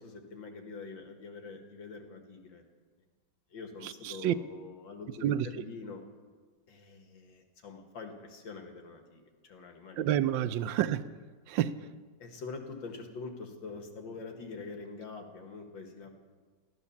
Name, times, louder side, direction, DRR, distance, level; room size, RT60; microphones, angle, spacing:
voice 1, 0.0-2.6 3.5-6.0 6.7-10.1 12.2-16.1, left 4 dB, 85° left, 2.4 m, -45 dB
voice 2, 3.8-4.3 5.2-5.5 10.0-11.1 11.5-11.8, right 11 dB, 85° right, 1.3 m, -29 dB
14.5 x 12.5 x 7.1 m
omnidirectional pair, 2.0 m